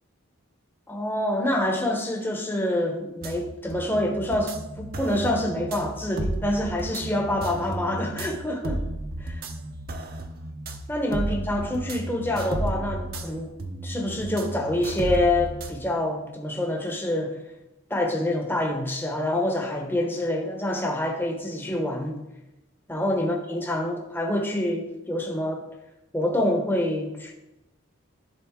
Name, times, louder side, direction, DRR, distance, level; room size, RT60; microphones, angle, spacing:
voice 1, 0.9-8.8 10.9-13.5 13.8-17.4 17.9-22.2 22.9-25.6 26.1-27.3, left 1 dB, 10° left, 0 dB, 0.8 m, -26 dB
sound 1, 3.2-15.7, right 1 dB, 45° right, 0.6 m, -33 dB
11.0 x 3.8 x 3.6 m, 0.94 s
head